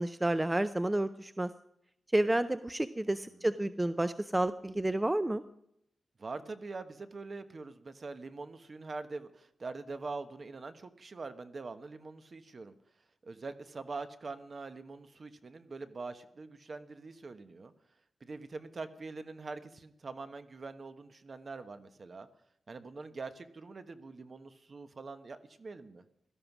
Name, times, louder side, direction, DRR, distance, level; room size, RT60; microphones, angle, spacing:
voice 1, 0.0-1.5 2.1-5.4, right 1 dB, 15° right, 12 dB, 0.5 m, -30 dB
voice 2, 6.2-12.7 13.2-17.7 18.2-22.3 22.7-26.0, right 3 dB, 45° right, 10 dB, 1.2 m, -44 dB
17.0 x 13.0 x 6.0 m, 0.77 s
wide cardioid pair, 125°, 0 cm